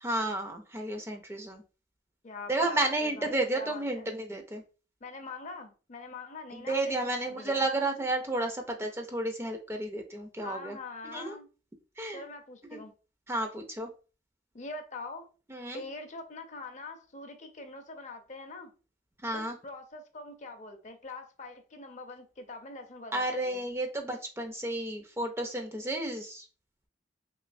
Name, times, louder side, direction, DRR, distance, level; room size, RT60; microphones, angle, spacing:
voice 1, 0.0-1.6 2.5-4.6 6.5-10.8 11.0-11.4 12.0-12.2 12.7-12.8 13.3-13.9 15.5-15.8 19.2-19.6 23.1-26.4, right 2 dB, 15° right, 0.4 m, -32 dB
voice 2, 2.2-4.1 5.0-6.9 7.2-7.6 10.4-11.5 12.1-12.9 14.5-15.3 15.7-18.7 19.3-23.6, left 3 dB, 40° left, 0.5 m, -43 dB
3.0 x 3.0 x 2.5 m
head